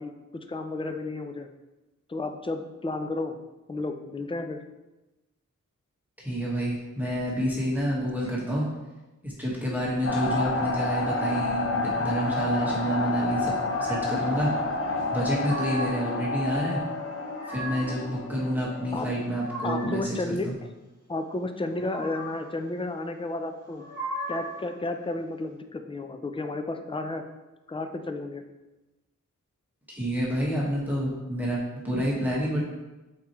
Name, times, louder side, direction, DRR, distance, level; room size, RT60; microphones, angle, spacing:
voice 1, 0.0-1.5 2.1-3.3 3.7-4.6 18.9-19.1 19.6-20.5 21.1-23.8 24.3-27.2 27.7-28.4, left 2 dB, 15° left, 6 dB, 0.5 m, -32 dB
voice 2, 6.2-8.6 9.2-13.5 13.8-14.5 15.1-16.8 17.5-20.5 29.9-32.6, equal, 5° right, -5 dB, 1.5 m, -28 dB
sound 1, 10.0-19.1, left 3 dB, 45° left, 0.8 m, -29 dB
sound 2, 13.6-14.2 15.1-16.1 17.0-18.0 19.0-20.1 21.6-22.5 23.6-24.7, right 1 dB, 70° left, 1.7 m, -38 dB
7.2 x 4.7 x 3.1 m, 1.1 s
wide cardioid pair, 105°, 31 cm